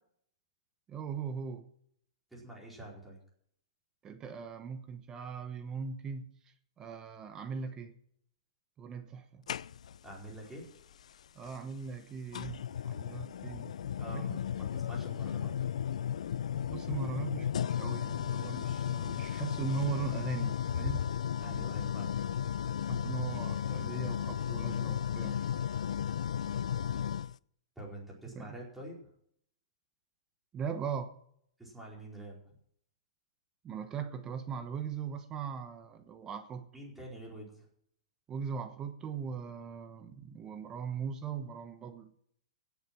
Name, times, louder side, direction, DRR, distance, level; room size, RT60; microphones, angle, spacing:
voice 1, 0.9-1.7 4.0-6.4 6.8-8.0 8.8-9.4 11.3-13.7 14.1-14.5 16.7-21.1 21.4-21.9 22.9-25.4 28.2-28.6 30.5-31.2 33.6-36.7 38.3-42.1, right 6 dB, 20° right, 1.0 m, -39 dB
voice 2, 2.3-3.2 10.0-10.7 14.0-15.5 21.4-22.1 27.8-29.1 31.6-32.5 36.7-37.7, right 1 dB, 5° right, 4.6 m, -46 dB
sound 1, 9.5-10.1 11.5-11.6 12.3-27.3, left 9 dB, 80° left, 0.4 m, -34 dB
16.5 x 7.3 x 6.0 m
hypercardioid pair, 150°, 3 cm